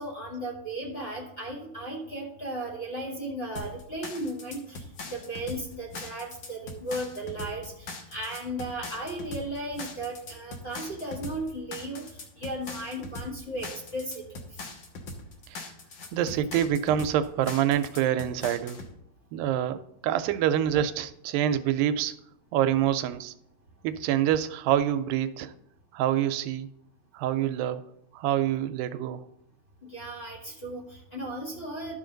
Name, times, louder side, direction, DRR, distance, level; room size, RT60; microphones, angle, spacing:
voice 1, 0.0-12.0 12.4-14.2 29.8-31.9, right 1 dB, 30° left, -3 dB, 1.1 m, -35 dB
sound 1, 3.6-18.9, left 2 dB, 85° left, 1.1 m, -41 dB
voice 2, 16.1-18.8 19.3-22.2 22.5-23.3 23.8-25.5 25.9-26.7 27.1-27.8 28.1-29.2, right 11 dB, 85° right, 11 dB, 2.3 m, -26 dB
12.0 x 7.1 x 3.9 m, 0.76 s
omnidirectional pair, 4.0 m